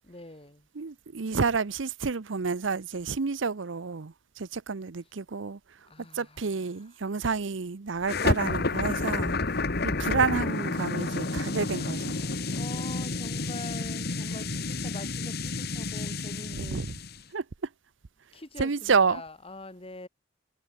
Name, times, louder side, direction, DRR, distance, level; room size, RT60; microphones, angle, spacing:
voice 1, 0.0-0.7 5.9-6.8 10.2-16.9 18.3-20.1, left 2 dB, 30° left, 3.2 m, -45 dB
voice 2, 0.8-5.6 6.1-9.3 9.8-12.2 16.5-16.9 17.3-17.4 18.6-19.2, right 5 dB, 75° right, 0.7 m, -29 dB
sound 1, 8.1-17.2, left 3 dB, 55° left, 1.7 m, -30 dB
head